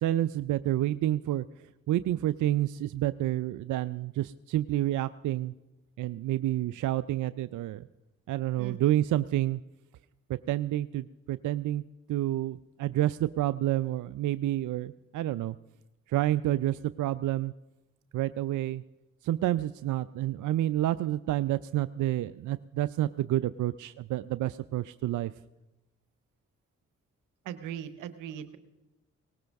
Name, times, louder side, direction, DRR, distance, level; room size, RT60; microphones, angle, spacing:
voice 1, 0.0-1.5 1.9-5.5 6.0-7.9 8.3-9.6 10.3-11.8 12.1-15.6 16.1-17.5 18.1-18.8 19.2-25.3, right 14 dB, 70° right, 15 dB, 0.5 m, -29 dB
voice 2, 8.6-8.9 27.4-28.6, right 9 dB, 90° right, 12 dB, 0.9 m, -39 dB
20.0 x 18.0 x 3.5 m, 0.99 s
supercardioid pair, 40°, 31 cm